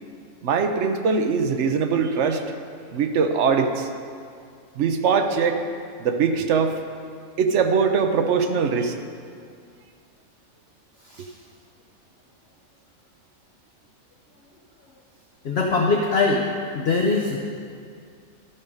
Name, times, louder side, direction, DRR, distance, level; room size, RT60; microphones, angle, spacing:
voice 1, 0.4-2.4 2.9-3.9 4.8-5.6 6.0-6.7 7.4-8.9, right 5 dB, 60° right, 6 dB, 1.0 m, -21 dB
voice 2, 15.4-16.5 16.7-17.4, left 3 dB, 55° left, 0 dB, 0.9 m, -22 dB
12.5 x 5.5 x 5.3 m, 2.3 s
omnidirectional pair, 1.5 m